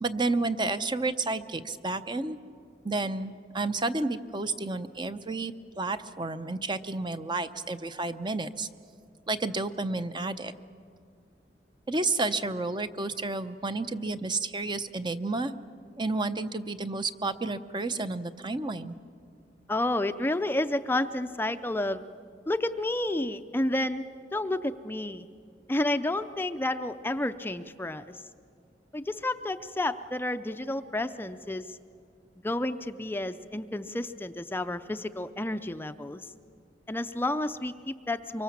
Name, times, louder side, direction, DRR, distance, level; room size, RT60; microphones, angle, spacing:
voice 1, 0.0-2.4 2.8-8.7 9.3-10.5 11.9-15.5 16.0-18.9, right 3 dB, 25° right, 10 dB, 0.7 m, -31 dB
voice 2, 19.7-22.0 22.5-24.0 24.3-25.3 25.7-28.2 28.9-31.8 32.4-36.3 36.9-38.4, left 1 dB, 10° left, 10 dB, 0.5 m, -30 dB
24.5 x 24.0 x 7.3 m, 2.2 s
head